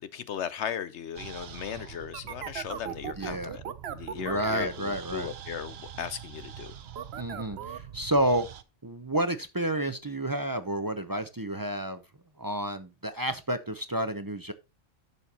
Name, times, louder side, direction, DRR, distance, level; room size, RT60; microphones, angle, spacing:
voice 1, 0.0-3.6 3.9-6.7, left 8 dB, 70° left, 0.9 m, -37 dB
sound 1, 1.2-8.6, right 9 dB, 60° right, 0.9 m, -40 dB
voice 2, 3.2-3.6 4.2-5.3 7.2-8.5 8.8-12.0 12.4-14.5, right 1 dB, 25° right, 0.5 m, -30 dB
11.0 x 6.9 x 2.9 m
omnidirectional pair, 1.3 m